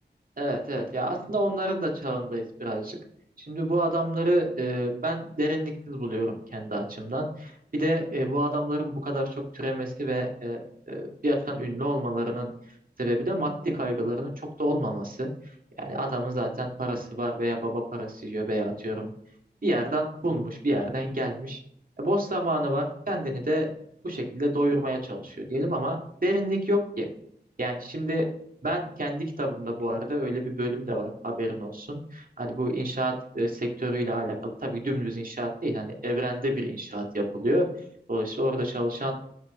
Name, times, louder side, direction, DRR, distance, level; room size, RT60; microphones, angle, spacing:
voice 1, 0.4-3.0 3.4-10.6 10.9-12.5 13.0-19.1 19.6-21.6 22.0-23.7 24.0-27.1 27.6-28.2 28.6-34.4 34.6-37.7 38.1-39.1, right 1 dB, 50° right, 1 dB, 2.0 m, -28 dB
8.7 x 6.0 x 3.2 m, 0.70 s
wide cardioid pair, 40°, 18 cm